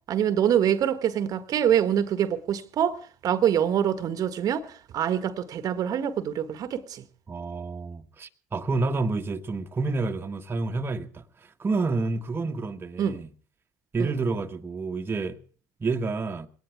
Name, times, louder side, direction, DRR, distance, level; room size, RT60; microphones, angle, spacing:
voice 1, 0.1-7.0 13.0-13.2 14.0-14.2, right 9 dB, 50° right, 1.5 m, -25 dB
voice 2, 7.3-13.3 13.9-15.4 15.8-16.5, right 3 dB, 25° right, 1.4 m, -29 dB
21.5 x 18.0 x 3.5 m
hypercardioid pair, 65°, 8 cm